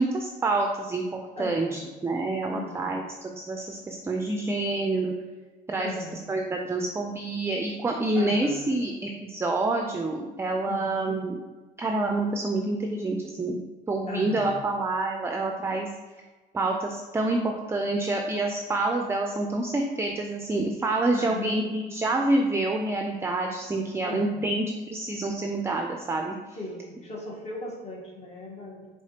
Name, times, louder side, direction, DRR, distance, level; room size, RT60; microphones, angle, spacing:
voice 1, 0.0-5.1 5.7-6.0 6.3-11.4 11.8-13.6 13.9-15.9 16.5-26.4, right 2 dB, 15° right, 2 dB, 0.4 m, -27 dB
voice 2, 1.3-1.8 2.5-2.9 5.8-6.3 8.1-8.8 10.6-11.0 14.1-14.6 21.2-21.7 24.0-24.5 26.5-28.9, left 2 dB, 40° left, -2 dB, 1.3 m, -38 dB
4.8 x 3.8 x 2.8 m, 1.3 s
cardioid pair, 110°, 17 cm